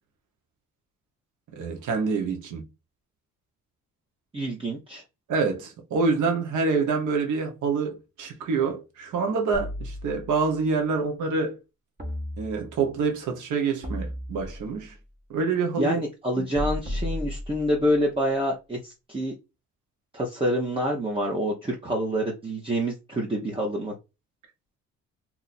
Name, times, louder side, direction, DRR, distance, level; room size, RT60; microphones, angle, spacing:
voice 1, 1.5-2.6 5.3-11.6 12.4-14.9 15.3-16.0 16.4-16.5, right 4 dB, 80° right, 1.1 m, -26 dB
voice 2, 4.3-5.0 15.8-19.3 20.1-23.9, equal, 20° right, 0.9 m, -27 dB
sound 1, 9.5-10.6 12.0-13.0 13.8-14.9 16.5-18.0, left 1 dB, 35° right, 1.4 m, -34 dB
2.9 x 2.6 x 4.1 m
cardioid pair, 90°, 30 cm